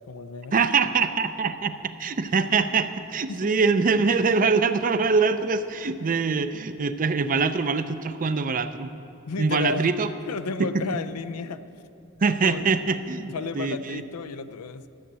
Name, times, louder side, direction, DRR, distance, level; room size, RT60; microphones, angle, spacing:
voice 1, 0.0-0.6 3.3-3.5 6.0-6.1 9.3-9.9 10.3-11.6 12.4-12.7 13.3-14.9, left 4 dB, 90° left, 12 dB, 0.5 m, -33 dB
voice 2, 0.5-8.9 9.4-10.1 10.6-11.0 12.2-14.0, right 4 dB, 40° right, 11 dB, 0.5 m, -24 dB
13.0 x 8.1 x 7.5 m, 2.8 s
head